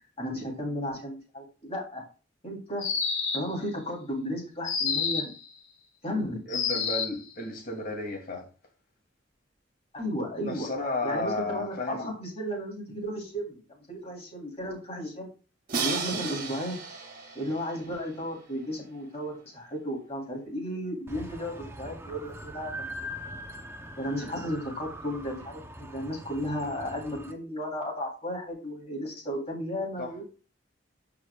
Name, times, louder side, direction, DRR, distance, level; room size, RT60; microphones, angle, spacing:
voice 1, 0.2-2.0 2.4-2.8 3.3-5.3 6.0-6.5 9.9-10.7 11.0-15.3 15.8-16.8 17.3-23.2 24.0-30.2, equal, 35° left, 3.1 m, -34 dB
sound 1, 2.8-3.6 4.6-5.4 6.5-7.2, left 6 dB, 90° left, 1.5 m, -29 dB
voice 2, 6.5-8.5 10.4-12.1 30.0-30.1, left 2 dB, 50° left, 2.6 m, -33 dB
Crash cymbal, 15.7-18.7, right 5 dB, 50° right, 2.1 m, -34 dB
sound 2, 21.1-27.3, equal, 15° right, 0.7 m, -42 dB
13.5 x 4.9 x 2.3 m
head